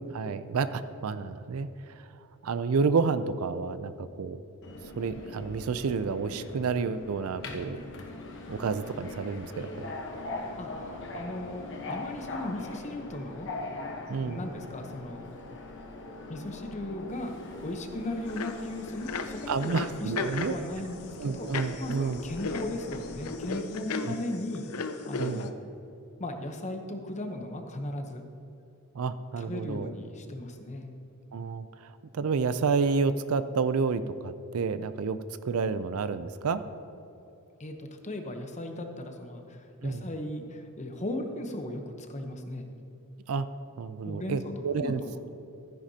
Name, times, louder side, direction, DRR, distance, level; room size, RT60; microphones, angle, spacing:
voice 1, 0.1-2.0 2.4-4.4 5.0-7.8 8.5-9.9 14.1-14.4 19.5-20.6 21.2-22.2 24.0-24.1 25.2-25.5 28.9-29.9 31.3-35.2 35.4-36.6 39.8-40.0 43.3-43.5 43.8-45.0, right 5 dB, 70° right, 13 dB, 0.4 m, -30 dB
Subway metro underground, 4.6-23.4, left 2 dB, 55° left, 1.0 m, -41 dB
voice 2, 10.3-13.5 14.2-15.3 16.3-17.4 17.6-20.1 20.4-21.5 21.8-25.6 26.2-28.2 29.4-30.9 37.6-42.7 44.0-45.2, left 1 dB, 30° left, 5 dB, 0.8 m, -37 dB
sound 1, 18.3-18.6 18.9-25.5, left 4 dB, 75° left, 0.6 m, -36 dB
13.5 x 10.0 x 2.8 m, 2.8 s
head